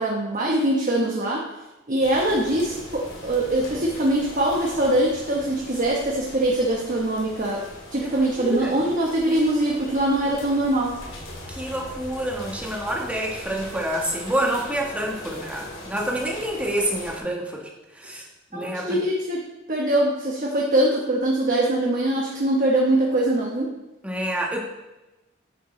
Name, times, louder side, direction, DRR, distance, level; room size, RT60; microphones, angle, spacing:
voice 1, 0.0-1.4 1.9-7.6 7.9-11.0 18.5-19.4 19.7-23.7, right 1 dB, 40° right, -2 dB, 1.2 m, -22 dB
sound 1, 2.0-17.2, left 1 dB, 75° left, 2.5 m, -40 dB
voice 2, 8.0-8.7 11.5-17.7 17.9-18.2 18.5-19.0 24.0-24.6, right 1 dB, 5° right, -1 dB, 1.3 m, -28 dB
10.0 x 6.8 x 3.3 m, 1.0 s
head